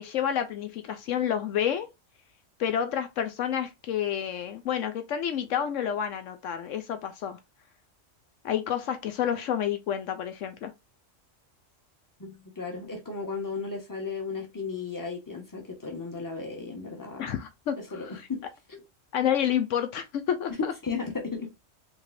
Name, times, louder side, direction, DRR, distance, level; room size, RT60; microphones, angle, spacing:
voice 1, 0.0-1.9 2.6-7.4 8.4-10.7 17.2-18.3 19.1-20.7, left 9 dB, 75° left, 1.0 m, -29 dB
voice 2, 12.2-17.4 17.8-18.4 18.7-18.8 20.8-21.5, left 4 dB, 15° left, 1.3 m, -35 dB
5.0 x 3.2 x 2.6 m
omnidirectional pair, 1.3 m